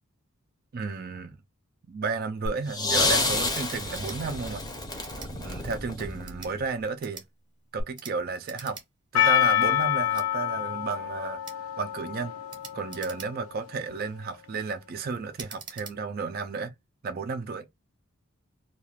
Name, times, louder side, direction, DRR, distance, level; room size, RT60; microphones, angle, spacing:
voice 1, 0.7-1.4 1.9-4.6 5.3-7.2 7.7-8.8 9.1-11.4 11.8-12.4 12.7-16.7 17.0-17.7, right 4 dB, 40° right, 0.3 m, -32 dB
sound 1, 2.5-6.6 7.8-7.9, left 2 dB, 20° left, 0.6 m, -29 dB
sound 2, 3.9-4.2 5.0-5.3 6.1-6.5 7.0-7.3 7.9-8.2 8.4-8.9 9.2-9.3 10.1-10.3 11.4-11.6 12.5-13.6 14.1-14.4 15.3-16.0, right 5 dB, 20° right, 0.7 m, -44 dB
Percussion, 9.1-13.7, left 12 dB, 70° left, 0.5 m, -27 dB
2.3 x 2.3 x 3.2 m
head